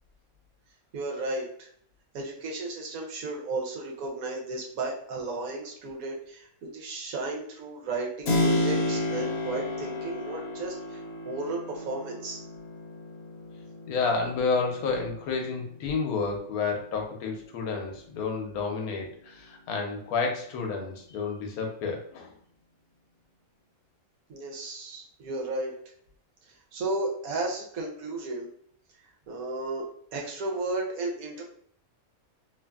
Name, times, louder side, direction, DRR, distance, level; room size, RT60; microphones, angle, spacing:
voice 1, 0.9-1.7 2.1-12.4 24.3-25.7 26.7-28.5 29.3-29.8 30.1-31.4, right 2 dB, 80° right, 0 dB, 1.2 m, -34 dB
Keyboard (musical), 8.2-16.8, left 1 dB, 60° left, 0.7 m, -32 dB
voice 2, 13.9-22.3, left 4 dB, 90° left, 2 dB, 1.1 m, -30 dB
2.8 x 2.5 x 2.3 m, 0.62 s
omnidirectional pair, 1.5 m